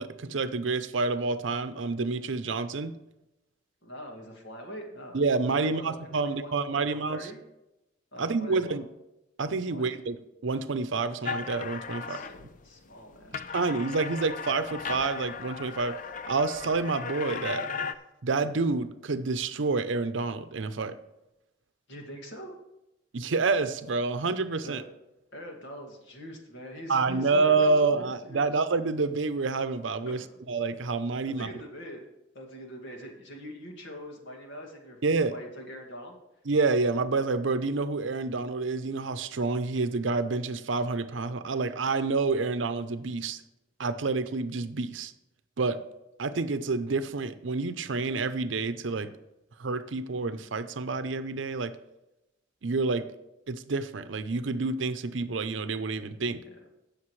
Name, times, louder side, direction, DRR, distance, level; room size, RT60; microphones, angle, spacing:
voice 1, 0.0-2.9 5.1-7.3 8.2-8.8 9.4-12.2 13.5-16.0 16.3-17.7 18.2-21.0 23.1-24.8 26.9-31.5 35.0-35.3 36.5-43.4 43.8-45.1 45.6-45.8 46.2-49.1 49.6-51.7 52.6-53.1 53.5-56.4, right 3 dB, 75° right, 12 dB, 0.7 m, -28 dB
voice 2, 3.8-7.4 8.1-8.8 9.7-10.0 12.0-13.6 21.9-22.5 24.6-24.8 25.3-28.5 30.1-30.4 31.3-32.0 32.3-36.2 48.9-49.1 56.4-56.6, equal, 65° left, 1 dB, 2.2 m, -44 dB
sound 1, 11.2-12.7 13.1-17.9, left 5 dB, 45° left, 0.5 m, -36 dB
17.5 x 6.6 x 3.2 m, 0.93 s
head